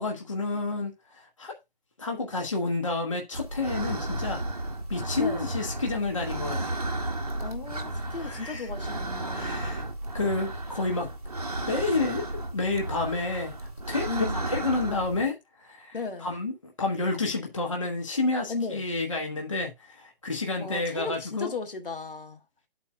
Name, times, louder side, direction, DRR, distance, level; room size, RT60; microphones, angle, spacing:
voice 1, 0.0-1.5 2.0-4.4 4.9-6.8 8.2-8.7 9.3-9.8 10.1-11.1 11.7-13.5 13.9-15.4 15.6-21.5, left 3 dB, 30° left, 1.0 m, -30 dB
sound 1, 3.3-15.3, right 2 dB, 40° right, 0.9 m, -33 dB
voice 2, 5.2-5.5 7.4-9.8 14.1-14.5 15.9-16.4 18.5-18.8 20.5-22.4, left 4 dB, 65° left, 1.2 m, -36 dB
12.0 x 4.3 x 2.3 m
hypercardioid pair, 180°, 30 cm